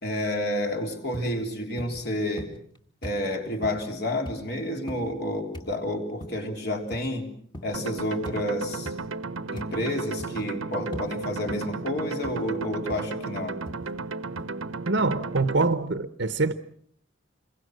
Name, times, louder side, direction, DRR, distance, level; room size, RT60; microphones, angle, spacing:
voice 1, 0.0-2.5 3.0-7.3 7.6-8.9 9.5-13.6, left 1 dB, 50° left, 3.5 m, -30 dB
sound 1, 1.1-1.4 1.8-2.1 2.4-2.8 3.0-3.2 3.6-3.9 4.3-4.5 4.9-5.1 5.5-5.8 6.2-6.4 6.9-7.1 7.5-7.8 8.3-8.5 8.9-9.1 9.6-9.8 10.2-10.5 10.9-11.1 11.5-11.7 12.2-12.5 12.9-13.1 13.7-13.9 14.4-14.5, equal, 20° left, 2.1 m, -40 dB
sound 2, 7.7-15.7, right 3 dB, 80° right, 1.0 m, -34 dB
voice 2, 14.9-16.5, right 3 dB, 55° right, 0.9 m, -24 dB
27.0 x 22.5 x 6.4 m
head